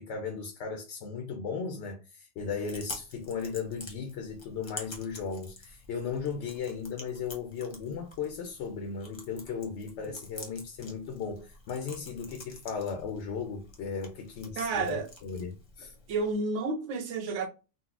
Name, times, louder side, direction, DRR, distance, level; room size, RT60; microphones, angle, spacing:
voice 1, 0.0-15.9, left 5 dB, 75° left, 0.9 m, -36 dB
Chewing mastication, 2.4-16.4, left 2 dB, 30° left, 0.7 m, -48 dB
voice 2, 14.6-15.1 16.1-17.5, right 3 dB, 80° right, 1.0 m, -30 dB
3.8 x 2.0 x 2.4 m
omnidirectional pair, 1.2 m